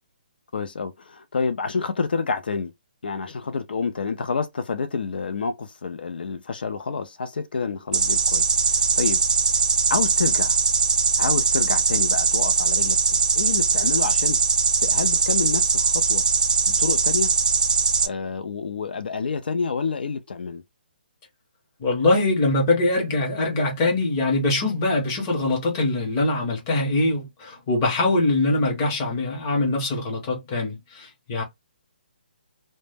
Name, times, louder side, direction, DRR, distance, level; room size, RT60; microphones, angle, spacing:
voice 1, 0.5-2.7 3.0-9.2 9.5-9.6 9.9-10.6 11.2-14.4 14.8-16.2 16.7-17.3 18.0-20.6, left 5 dB, 65° left, 0.4 m, -28 dB
sound 1, 7.9-18.1, right 5 dB, 50° right, 0.4 m, -21 dB
voice 2, 21.8-31.4, left 2 dB, 20° left, 0.7 m, -23 dB
2.1 x 2.0 x 3.2 m
hypercardioid pair, 170°, 6 cm